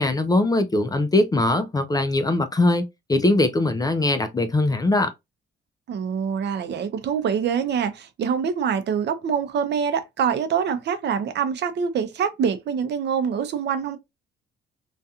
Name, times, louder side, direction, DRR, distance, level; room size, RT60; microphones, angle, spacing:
voice 1, 0.0-5.1, left 2 dB, 20° left, 0.4 m, -21 dB
voice 2, 5.9-14.0, right 7 dB, 60° right, 0.6 m, -25 dB
2.7 x 2.3 x 2.4 m
cardioid pair, 90°, 20 cm